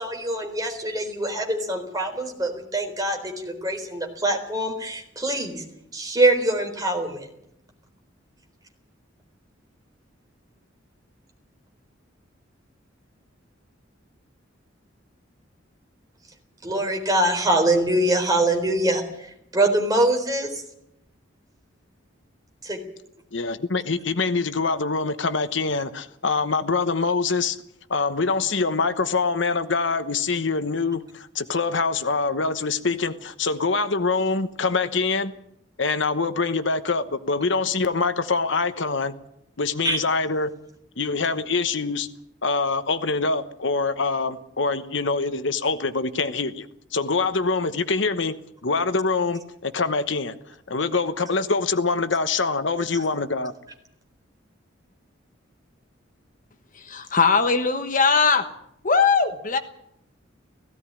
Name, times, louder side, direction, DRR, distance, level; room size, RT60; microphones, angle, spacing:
voice 1, 0.0-5.6 5.9-7.3 16.6-19.0 19.5-20.6 22.6-22.8 39.8-40.0, right 1 dB, 20° right, 4.0 m, -23 dB
voice 2, 23.3-27.6 27.9-35.3 35.8-39.1 39.6-40.5 41.0-42.1 42.4-46.7 46.9-48.3 48.6-50.3 50.7-53.5, left 4 dB, 70° left, 1.1 m, -24 dB
voice 3, 56.7-58.5 58.8-59.6, left 5 dB, 40° left, 1.3 m, -20 dB
17.5 x 16.0 x 9.9 m
head